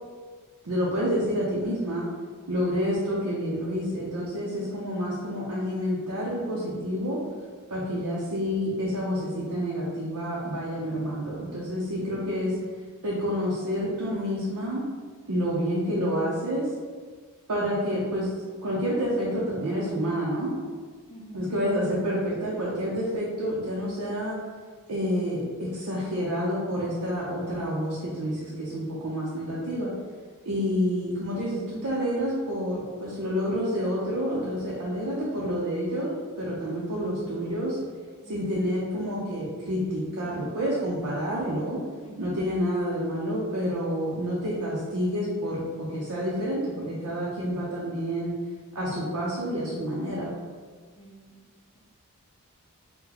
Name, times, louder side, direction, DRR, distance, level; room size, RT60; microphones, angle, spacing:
voice 1, 0.6-2.1 2.5-7.2 7.7-12.5 13.0-14.8 15.3-16.7 17.5-18.3 18.6-20.5 21.3-24.4 24.9-29.9 30.4-37.8 38.3-41.8 42.2-48.3 48.7-50.3, equal, 80° right, -5 dB, 0.6 m, -28 dB
voice 2, 12.1-12.7 21.1-21.5 23.0-23.3 30.6-30.9 38.2-38.4 42.0-42.3 51.0-51.4, equal, 25° left, -2 dB, 0.5 m, -47 dB
2.8 x 2.2 x 3.8 m, 1.5 s
head